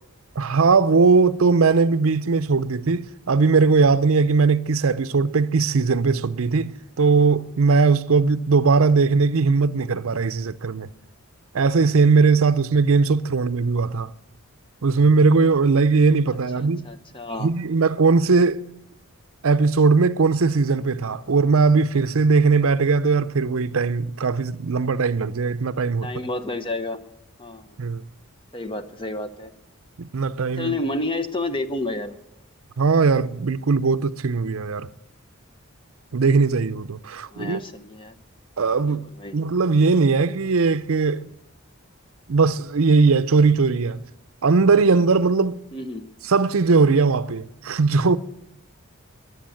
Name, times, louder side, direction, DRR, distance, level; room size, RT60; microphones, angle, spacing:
voice 1, 0.4-10.9 11.5-14.1 14.8-16.9 17.4-18.6 19.4-26.3 27.8-28.0 30.0-30.7 32.8-34.9 36.1-37.6 38.6-39.0 39.3-41.2 42.3-44.0 44.4-45.6 46.2-48.2, right 4 dB, 70° right, 0.6 m, -19 dB
voice 2, 16.6-17.5 26.0-27.0 27.4-27.7 28.5-29.5 30.6-32.2 37.3-38.1 38.9-39.4 45.7-46.0, left 2 dB, 25° left, 0.8 m, -30 dB
22.0 x 8.0 x 7.7 m
head